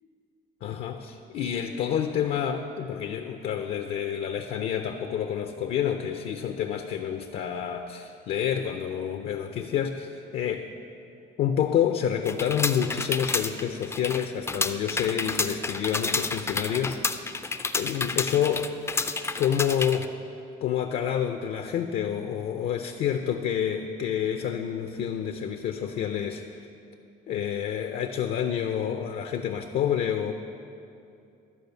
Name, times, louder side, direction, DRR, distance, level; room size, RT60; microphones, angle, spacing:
voice 1, 0.6-10.7 11.4-18.7 19.4-20.1 20.6-26.6 27.3-30.3, left 9 dB, 65° left, 5 dB, 0.5 m, -28 dB
sound 1, 12.3-20.1, left 3 dB, 15° left, 0.4 m, -30 dB
12.5 x 4.8 x 6.8 m, 2.6 s
cardioid pair, 110°, 17 cm